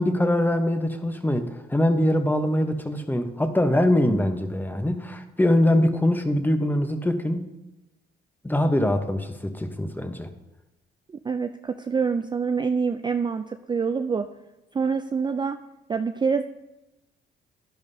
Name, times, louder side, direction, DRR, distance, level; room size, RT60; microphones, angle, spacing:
voice 1, 0.0-7.5 8.4-10.3, left 1 dB, 10° left, 7 dB, 0.9 m, -23 dB
voice 2, 11.2-14.2 14.7-15.6 15.9-16.4, right 5 dB, 20° right, 7 dB, 0.4 m, -26 dB
10.5 x 10.5 x 2.8 m, 0.98 s
cardioid pair, 90°, 20 cm